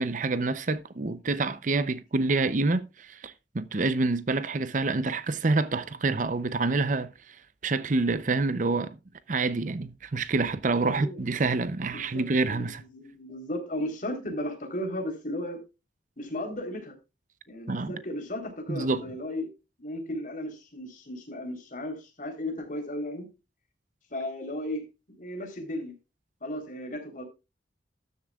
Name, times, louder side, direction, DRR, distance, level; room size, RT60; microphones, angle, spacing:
voice 1, 0.0-7.4 7.6-9.0 9.3-12.8 17.7-17.9 18.7-19.0, right 3 dB, 45° right, 0.6 m, -27 dB
voice 2, 10.8-11.2 11.9-15.6 16.2-17.0 17.5-19.5 19.8-23.3 24.1-24.8 25.2-25.9 26.4-27.2, left 1 dB, 45° left, 3.6 m, -35 dB
13.0 x 11.0 x 2.4 m
head